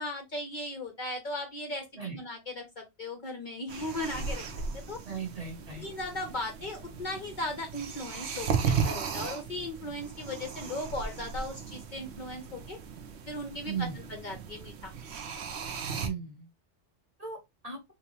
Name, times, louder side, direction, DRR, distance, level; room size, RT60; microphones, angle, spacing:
voice 1, 0.0-4.4 4.7-5.0 5.8-12.8 13.3-14.9, left 1 dB, 50° left, 4 dB, 0.7 m, -37 dB
sound 1, 3.7-16.1, right 6 dB, 65° right, 0.9 m, -36 dB
voice 2, 5.1-5.8 13.6-14.0 16.0-16.5 17.2-17.4 17.6-17.8, right 6 dB, 35° right, 2 dB, 0.9 m, -36 dB
3.3 x 2.9 x 3.0 m, 0.20 s
omnidirectional pair, 1.2 m